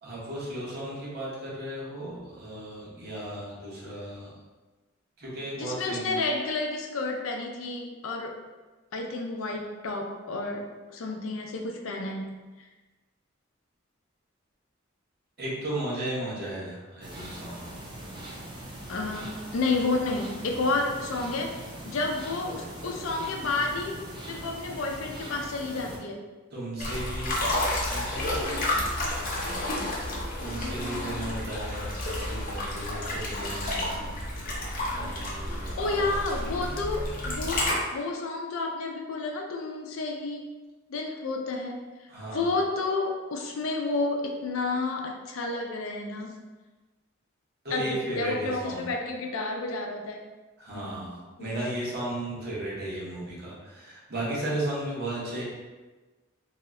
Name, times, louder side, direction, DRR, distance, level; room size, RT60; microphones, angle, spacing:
voice 1, 0.0-4.4 5.2-6.1 15.4-17.7 26.5-27.5 27.9-28.3 30.4-34.6 34.9-36.2 42.1-42.5 47.6-48.9 50.6-55.4, right 1 dB, 55° right, -7 dB, 1.0 m, -35 dB
voice 2, 5.6-8.4 8.9-12.2 18.9-21.5 21.8-24.0 24.3-26.2 30.6-31.3 34.9-35.1 35.5-40.5 40.9-41.8 42.3-46.4 47.7-50.2 50.7-51.0 51.4-51.6, left 3 dB, 85° left, 2 dB, 0.5 m, -31 dB
sound 1, 17.0-26.0, right 1 dB, 25° right, 0.6 m, -41 dB
sound 2, 26.8-37.7, left 1 dB, 45° left, 0.7 m, -31 dB
2.8 x 2.1 x 3.5 m, 1.2 s
head